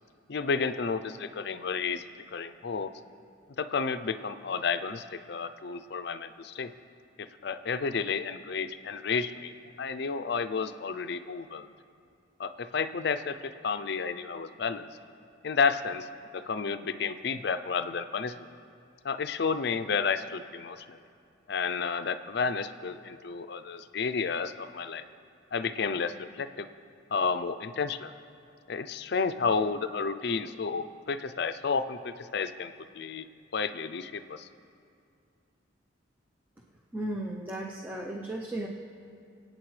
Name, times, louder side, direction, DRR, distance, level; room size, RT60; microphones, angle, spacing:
voice 1, 0.3-2.0 2.3-2.9 3.6-6.7 7.2-9.5 9.8-11.7 12.4-15.0 15.4-16.1 16.3-18.3 19.0-21.0 21.5-25.0 25.5-26.7 27.1-28.1 28.7-33.3 33.5-34.5, left 5 dB, 55° left, 12 dB, 0.4 m, -31 dB
voice 2, 36.9-38.7, right 1 dB, 10° right, -1 dB, 0.6 m, -35 dB
26.0 x 8.7 x 3.2 m, 2.4 s
head